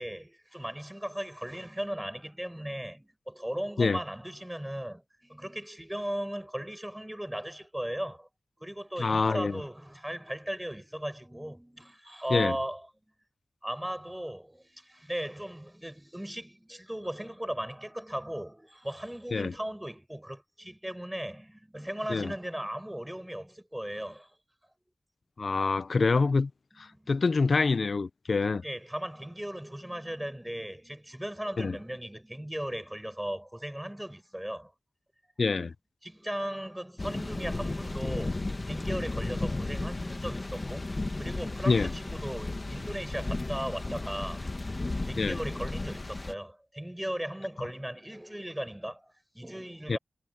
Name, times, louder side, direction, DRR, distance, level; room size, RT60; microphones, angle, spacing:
voice 1, 0.0-8.3 8.6-12.9 13.6-24.3 26.8-27.1 28.6-34.7 36.0-40.9 41.2-44.6 44.9-50.0, equal, 10° right, 5.5 m, -37 dB
voice 2, 9.0-9.6 12.3-12.5 19.3-19.5 22.1-22.3 25.4-26.5 26.8-28.6 31.6-31.8 35.4-35.7 41.7-41.9 45.2-45.4 49.9-50.0, left 4 dB, 65° left, 0.5 m, -26 dB
sound 1, 37.0-46.3, left 2 dB, 40° left, 1.8 m, -34 dB
cardioid pair, 55°, 0 cm